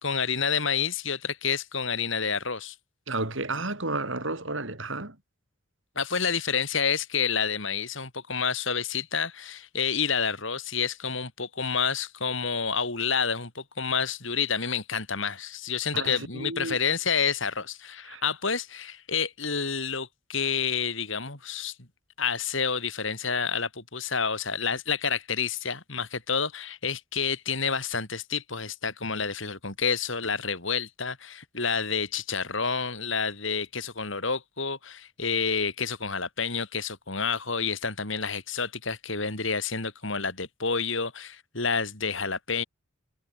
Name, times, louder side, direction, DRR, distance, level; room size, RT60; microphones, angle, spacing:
voice 1, 0.0-2.7 6.0-21.7 22.2-42.6, left 6 dB, 65° left, 4.3 m, -29 dB
voice 2, 3.1-5.2 15.9-16.8 18.1-18.2, right 2 dB, 60° right, 4.6 m, -32 dB
head